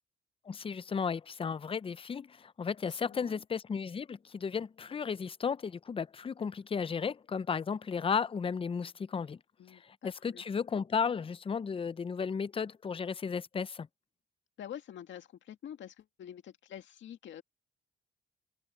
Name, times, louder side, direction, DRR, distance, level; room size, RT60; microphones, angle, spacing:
voice 1, 0.5-9.4 9.7-13.9, left 6 dB, 30° left, 0.6 m, -34 dB
voice 2, 2.9-3.4 9.6-10.4 14.6-17.4, left 10 dB, 70° left, 2.1 m, -47 dB
cardioid pair, 90°, 20 cm